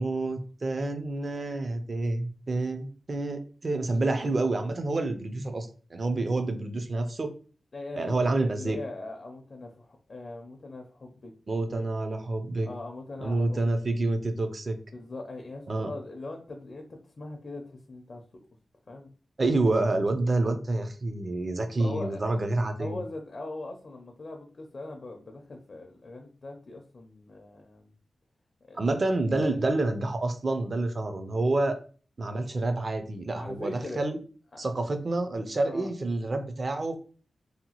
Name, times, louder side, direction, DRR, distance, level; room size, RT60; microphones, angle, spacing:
voice 1, 0.0-7.3 8.0-8.8 11.5-12.7 13.2-14.8 15.7-15.9 19.4-23.0 28.8-31.7 32.2-34.2 34.6-37.0, right 2 dB, 40° right, 7 dB, 0.4 m, -28 dB
voice 2, 7.7-8.1 8.4-11.3 11.7-11.8 12.6-13.6 14.9-18.2 18.9-19.1 21.8-22.4 22.8-27.9 28.7-28.8 29.4-29.7 33.3-34.0 34.6-34.8 35.6-35.9, left 2 dB, 50° left, 2 dB, 0.5 m, -40 dB
2.7 x 2.2 x 2.8 m, 0.39 s
wide cardioid pair, 125°, 0 cm